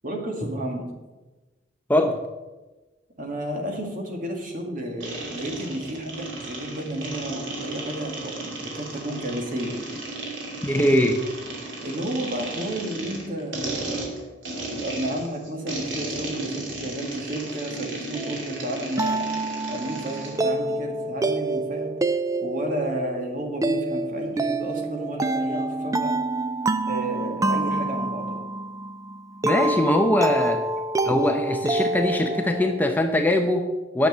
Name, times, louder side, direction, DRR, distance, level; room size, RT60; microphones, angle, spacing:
voice 1, 0.0-0.8 3.2-9.8 11.8-14.1 14.7-19.2 19.7-21.9 22.4-26.1 26.9-28.4, right 1 dB, 45° right, 2 dB, 2.1 m, -32 dB
voice 2, 1.9-2.2 10.6-11.2 29.4-30.6 31.0-34.1, left 1 dB, 10° left, 4 dB, 0.7 m, -22 dB
sound 1, 5.0-20.4, right 2 dB, 80° right, 2.5 m, -34 dB
sound 2, 18.1-32.9, right 2 dB, 20° right, 0.4 m, -27 dB
9.8 x 6.5 x 7.4 m, 1.2 s
head